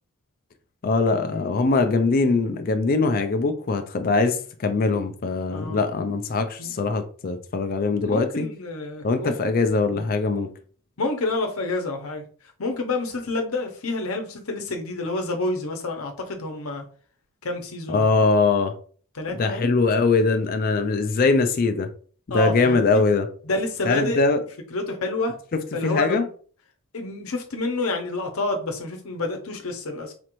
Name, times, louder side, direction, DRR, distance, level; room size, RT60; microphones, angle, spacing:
voice 1, 0.8-8.5 9.0-10.5 17.9-18.7 19.3-21.9 22.3-23.3 23.8-24.4 25.5-26.2, left 3 dB, 40° left, 0.4 m, -22 dB
voice 2, 5.5-5.8 6.6-6.7 8.0-9.3 9.9-10.0 11.0-12.2 12.6-16.8 17.4-18.1 19.1-19.8 22.3-23.0 23.4-24.2 24.7-25.3 25.7-26.2 26.9-30.1, left 2 dB, 70° left, 0.8 m, -28 dB
4.2 x 2.5 x 3.0 m
head